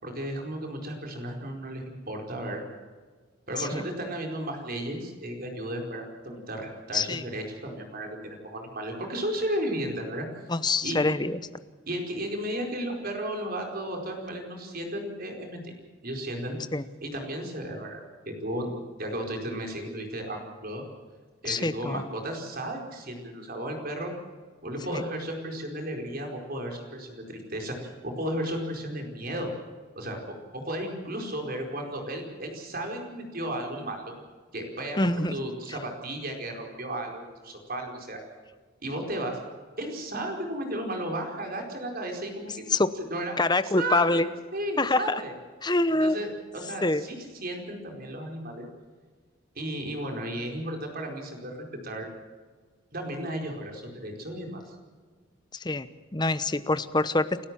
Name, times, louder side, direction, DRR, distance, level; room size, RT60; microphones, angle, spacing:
voice 1, 0.0-2.6 3.5-10.3 10.8-11.0 11.9-15.7 16.0-16.6 17.0-18.7 19.0-20.8 21.4-24.1 24.6-29.5 29.9-34.1 34.5-38.2 38.8-39.4 39.8-42.6 43.1-43.4 43.6-45.3 45.9-48.7 49.5-52.1 52.9-54.8, right 1 dB, 45° right, 2 dB, 4.7 m, -34 dB
voice 2, 10.5-11.4 16.7-16.8 21.5-22.0 24.9-25.0 35.0-35.4 42.7-42.9 43.4-44.2 44.8-45.2 45.6-46.2 46.8-47.0 55.5-57.5, left 2 dB, 20° left, 13 dB, 0.9 m, -25 dB
29.5 x 13.0 x 7.5 m, 1.5 s
head